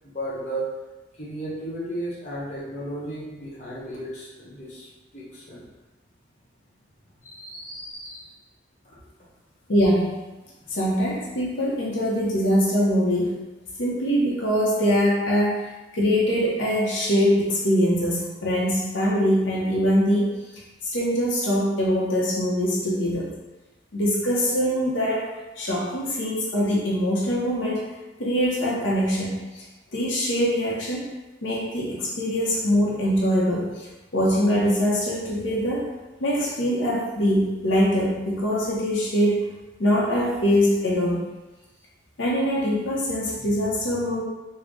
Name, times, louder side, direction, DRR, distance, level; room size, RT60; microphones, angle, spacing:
voice 1, 0.1-0.7 1.1-4.9 5.1-5.7 7.2-8.3, right 1 dB, 40° left, -7 dB, 1.0 m, -34 dB
voice 2, 9.7-10.2 10.7-13.4 13.8-15.6 15.9-20.3 20.9-23.3 23.9-25.3 25.6-27.9 28.2-29.6 29.9-31.1 31.4-33.9 34.1-35.9 36.2-39.4 39.8-41.2 42.2-44.2, equal, 80° left, -5 dB, 0.7 m, -23 dB
3.8 x 2.1 x 3.5 m, 1.1 s
head